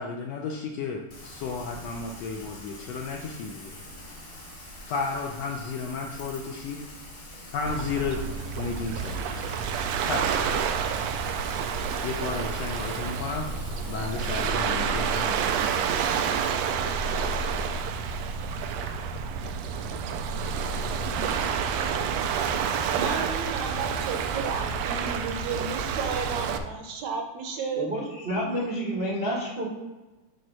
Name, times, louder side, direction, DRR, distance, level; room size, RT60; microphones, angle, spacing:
voice 1, 0.0-3.8 4.8-6.8 7.5-8.2 8.6-9.5 10.0-10.5 12.0-13.5 13.9-15.5, left 4 dB, 75° left, 1 dB, 1.5 m, -33 dB
Rain, 1.1-14.5, left 1 dB, 35° left, 1.1 m, -45 dB
Waves surf, 7.7-26.6, right 6 dB, 90° right, 1.4 m, -29 dB
voice 2, 22.9-27.9, right 5 dB, 70° right, 4 dB, 2.0 m, -33 dB
voice 3, 27.8-29.7, equal, 50° right, -5 dB, 0.6 m, -29 dB
9.0 x 3.1 x 6.1 m, 1.1 s
omnidirectional pair, 3.5 m